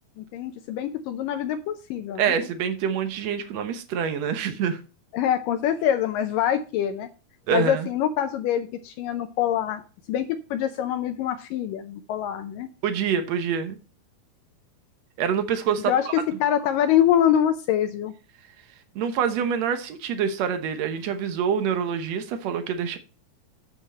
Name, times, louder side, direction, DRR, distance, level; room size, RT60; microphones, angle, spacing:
voice 1, 0.2-2.3 5.1-7.1 7.5-9.8 10.1-12.7 15.9-18.1, left 10 dB, 75° left, 2.1 m, -25 dB
voice 2, 2.2-4.8 7.5-7.9 12.8-13.8 15.2-16.1 18.9-23.0, right 7 dB, 75° right, 1.6 m, -26 dB
8.8 x 7.3 x 4.2 m
omnidirectional pair, 4.3 m